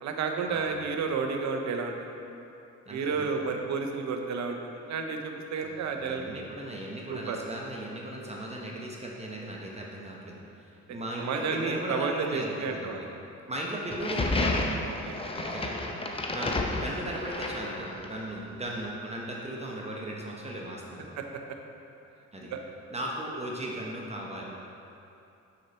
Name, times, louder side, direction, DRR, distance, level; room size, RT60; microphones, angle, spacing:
voice 1, 0.0-2.1 2.9-6.4 7.1-7.4 10.9-13.0 15.0-15.2 22.5-22.6, right 5 dB, 65° right, 3 dB, 0.8 m, -31 dB
voice 2, 2.9-3.3 5.6-13.1 13.5-14.7 15.4-15.8 16.3-21.1 22.3-22.5 22.9-24.4, right 1 dB, 20° right, -3 dB, 0.9 m, -37 dB
sound 1, 13.9-18.2, left 2 dB, 20° left, 0.7 m, -31 dB
6.5 x 5.6 x 4.3 m, 2.8 s
cardioid pair, 90°, 30 cm